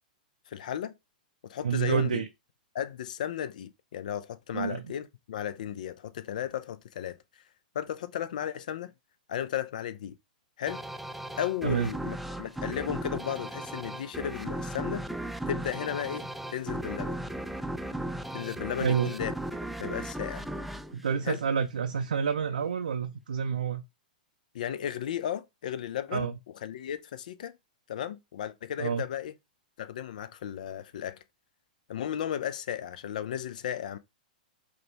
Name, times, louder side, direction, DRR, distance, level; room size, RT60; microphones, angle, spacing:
voice 1, 0.5-0.9 1.4-2.2 2.7-7.2 7.7-8.9 9.3-10.2 10.6-10.8 11.4-15.1 15.5-17.2 18.3-19.3 19.8-20.4 21.2-21.4 24.5-26.3 26.6-27.6 27.9-29.3 29.8-31.2 31.9-34.0, left 10 dB, 65° left, 0.5 m, -34 dB
voice 2, 1.6-2.3 4.5-4.8 11.6-11.9 18.8-19.1 20.9-23.8 26.1-26.3 28.8-29.0, right 7 dB, 80° right, 0.4 m, -28 dB
sound 1, 10.7-21.9, right 1 dB, ahead, 0.3 m, -36 dB
5.0 x 2.3 x 3.3 m
hypercardioid pair, 110°, 5 cm